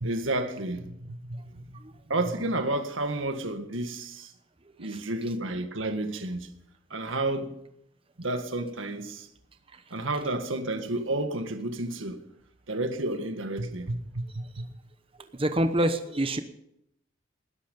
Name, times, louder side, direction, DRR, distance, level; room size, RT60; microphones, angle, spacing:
voice 1, 0.0-1.8 2.1-4.3 4.8-6.5 6.9-7.5 8.2-9.3 9.9-12.2 12.7-14.7, right 2 dB, 90° right, 1.7 m, -31 dB
voice 2, 15.3-16.4, right 1 dB, 30° right, 0.9 m, -27 dB
19.5 x 11.5 x 5.4 m
head